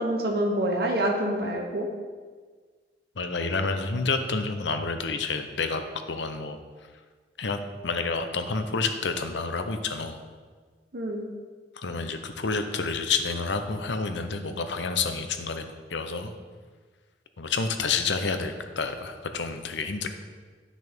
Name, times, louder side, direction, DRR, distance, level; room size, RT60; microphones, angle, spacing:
voice 1, 0.0-1.9 10.9-11.2, right 1 dB, 55° right, 1 dB, 1.0 m, -26 dB
voice 2, 3.2-5.8 6.1-6.6 7.4-7.6 7.8-10.2 11.8-16.3 17.4-20.1, left 4 dB, 80° left, 7 dB, 0.7 m, -29 dB
10.0 x 6.2 x 3.6 m, 1.5 s
head